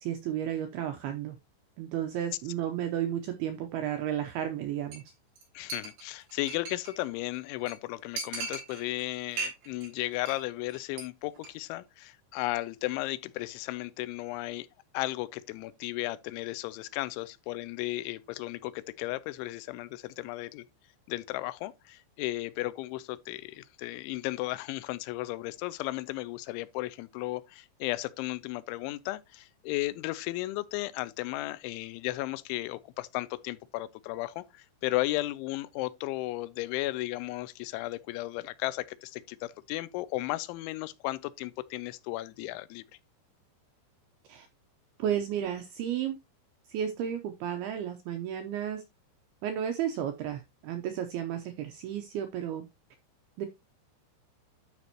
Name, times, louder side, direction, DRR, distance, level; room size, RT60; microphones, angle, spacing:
voice 1, 0.0-1.4 1.8-5.0 44.3-44.5 45.0-46.2 46.7-48.8 49.4-52.6 53.4-53.5, right 10 dB, 80° right, 2.3 m, -33 dB
Chink clink, 4.9-5.1 5.4-5.5 5.7-7.0 7.3-7.4 7.7-7.8 8.2-9.0 9.3-9.9 10.1-10.4 10.7-11.0 11.3-11.5, right 3 dB, 60° right, 5.8 m, -38 dB
voice 2, 5.6-14.7 14.9-20.7 21.1-42.8, left 18 dB, 90° left, 3.0 m, -35 dB
12.5 x 5.2 x 2.9 m
omnidirectional pair, 5.3 m